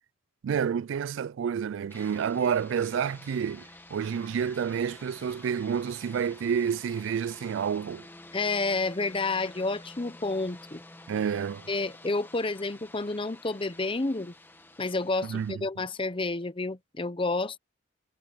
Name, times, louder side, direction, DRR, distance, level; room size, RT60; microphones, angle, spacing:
voice 1, 0.4-8.1 11.1-11.7 15.2-15.7, right 7 dB, 70° right, 0.3 m, -29 dB
sound 1, 1.9-15.5, left 2 dB, 10° left, 1.4 m, -50 dB
voice 2, 8.3-10.8 11.7-14.3 14.8-17.6, left 3 dB, 25° left, 0.8 m, -30 dB
head